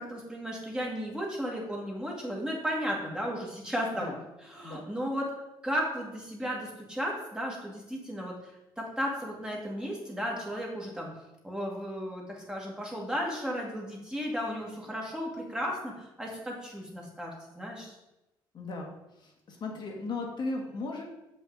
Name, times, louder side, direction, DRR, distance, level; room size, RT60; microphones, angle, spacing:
voice 1, 0.0-4.1 4.4-5.3 5.6-11.1 11.4-18.0, equal, 10° right, -2 dB, 1.8 m, -34 dB
voice 2, 18.5-18.9 19.2-21.0, left 3 dB, 50° left, 0 dB, 1.4 m, -36 dB
6.9 x 5.4 x 3.9 m, 0.94 s
cardioid pair, 100°, 9 cm